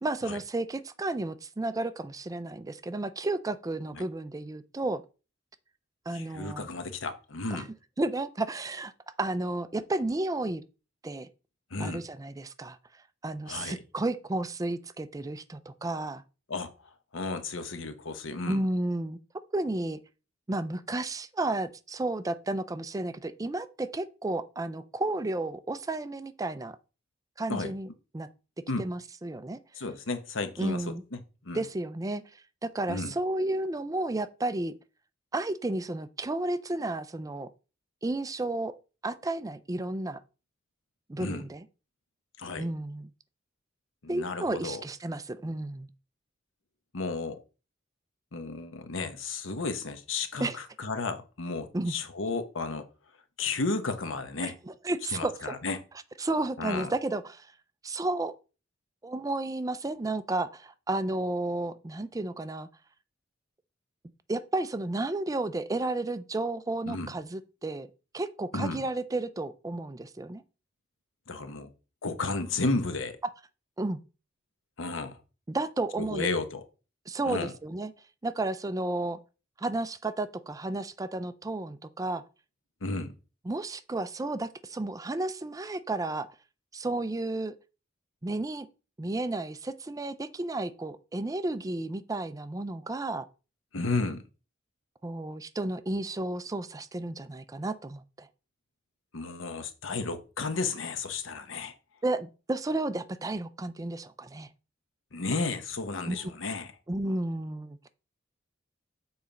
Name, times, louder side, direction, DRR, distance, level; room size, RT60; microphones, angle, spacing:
voice 1, 0.0-5.0 6.1-6.7 7.5-7.7 8.0-8.9 9.2-10.6 11.0-11.3 11.8-12.8 13.2-16.2 18.5-19.2 19.5-20.0 20.5-26.8 27.4-27.9 28.1-28.3 28.8-29.6 30.6-31.0 31.5-32.2 32.6-34.7 35.3-37.5 38.0-38.7 39.0-40.2 41.1-41.6 42.6-43.1 44.1-45.9 50.4-50.6 51.7-51.9 54.4-55.6 56.2-57.5 57.8-58.3 59.0-62.7 64.3-67.9 68.1-70.4 73.8-74.0 75.5-76.3 77.1-77.9 78.2-79.2 79.6-82.2 83.5-86.3 86.7-87.5 88.2-88.7 89.0-93.3 95.0-98.3 102.0-104.5 106.1-106.3 106.9-107.8, right 2 dB, 20° right, 0.4 m, -32 dB
voice 2, 6.1-7.7 11.7-12.0 13.5-13.8 16.5-16.7 17.1-18.6 27.5-27.7 28.7-28.8 29.8-30.8 31.1-31.6 32.9-33.1 41.2-41.4 42.4-42.7 44.0-44.8 46.9-47.4 48.3-52.9 53.4-54.5 55.1-55.8 56.6-56.9 66.9-67.1 68.5-68.8 71.3-71.7 72.0-73.2 74.8-75.2 76.0-76.6 77.3-77.5 82.8-83.1 93.7-94.2 99.1-101.7 105.1-106.7, left 3 dB, 85° left, 1.0 m, -33 dB
7.1 x 4.2 x 5.1 m
head